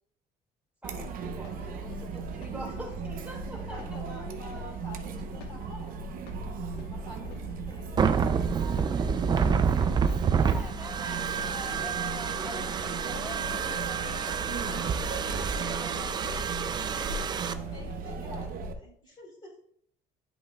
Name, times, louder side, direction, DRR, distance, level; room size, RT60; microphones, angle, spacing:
voice 1, 0.8-3.8 10.4-14.5, equal, 5° right, -3 dB, 3.1 m, -44 dB
Chatter, 0.8-18.7, right 4 dB, 55° right, 0.7 m, -37 dB
sound 1, 1.0-18.3, left 6 dB, 70° left, 1.1 m, -53 dB
voice 2, 3.6-6.0 6.9-8.1 15.3-16.4 17.5-19.6, left 1 dB, 25° left, -4 dB, 2.6 m, -48 dB
sound 2, 8.0-17.5, right 6 dB, 25° right, 0.3 m, -28 dB
10.5 x 5.4 x 2.3 m, 0.66 s
cardioid pair, 140°, 18 cm